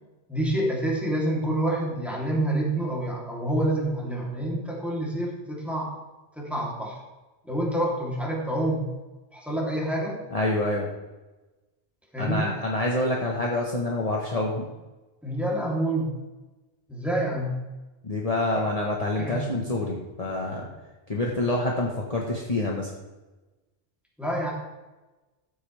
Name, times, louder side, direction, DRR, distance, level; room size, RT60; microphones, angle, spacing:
voice 1, 0.3-6.0 6.4-7.0 7.4-8.9 9.3-10.2 12.1-12.5 15.2-16.1 16.9-17.6 19.2-19.4 24.2-24.5, right 1 dB, ahead, -4 dB, 3.2 m, -27 dB
voice 2, 10.3-10.9 12.2-14.6 18.0-20.7 21.1-22.9, left 2 dB, 35° left, -2 dB, 1.4 m, -27 dB
14.5 x 8.6 x 3.4 m, 1.1 s
omnidirectional pair, 1.1 m